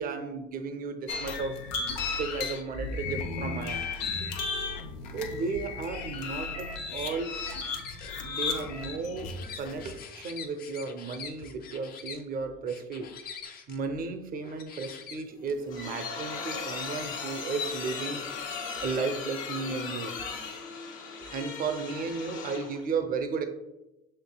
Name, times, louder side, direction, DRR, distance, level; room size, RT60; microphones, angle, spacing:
voice 1, 0.0-3.9 5.1-7.3 8.2-13.1 13.7-18.3 18.8-20.1 21.3-23.5, right 4 dB, 45° right, 0.6 m, -34 dB
sound 1, 1.1-10.0, left 4 dB, 85° left, 0.7 m, -35 dB
sound 2, 6.7-8.1 8.6-12.2 12.7-13.8 14.4-15.5, left 6 dB, 45° left, 0.6 m, -45 dB
sound 3, 15.3-22.8, left 5 dB, 70° left, 1.1 m, -37 dB
6.7 x 3.2 x 2.2 m
supercardioid pair, 80°, 21 cm